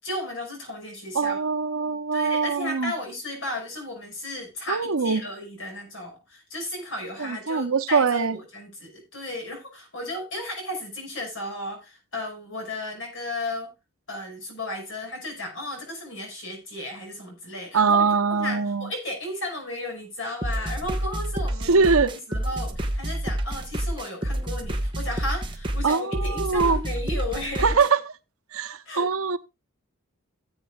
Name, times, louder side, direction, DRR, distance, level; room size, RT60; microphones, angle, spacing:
voice 1, 0.0-1.4 2.1-13.7 14.1-27.8 28.9-29.1, left 1 dB, 65° left, 5.7 m, -34 dB
voice 2, 1.1-2.9 4.7-5.2 7.2-8.4 17.7-18.9 21.7-22.1 25.8-26.8 27.6-28.0 28.5-29.4, right 5 dB, 80° right, 0.8 m, -22 dB
sound 1, 20.4-27.9, right 1 dB, 25° right, 1.2 m, -29 dB
17.0 x 8.1 x 2.4 m
head